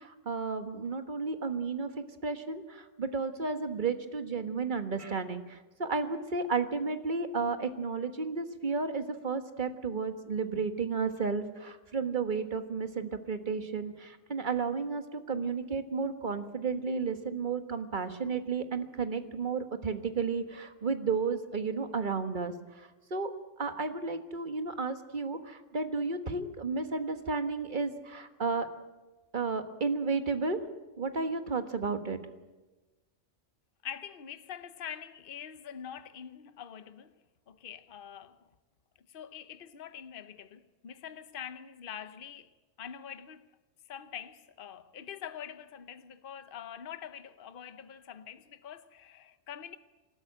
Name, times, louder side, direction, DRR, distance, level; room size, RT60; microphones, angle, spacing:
voice 1, 0.0-1.9 2.2-23.3 23.6-28.7 29.3-30.6 31.0-32.2, right 4 dB, 40° right, 1.5 m, -33 dB
voice 2, 33.8-37.2 37.5-38.4 39.1-42.5 42.8-43.5 43.9-49.8, left 9 dB, 50° left, 1.0 m, -44 dB
27.0 x 13.0 x 8.9 m
omnidirectional pair, 1.3 m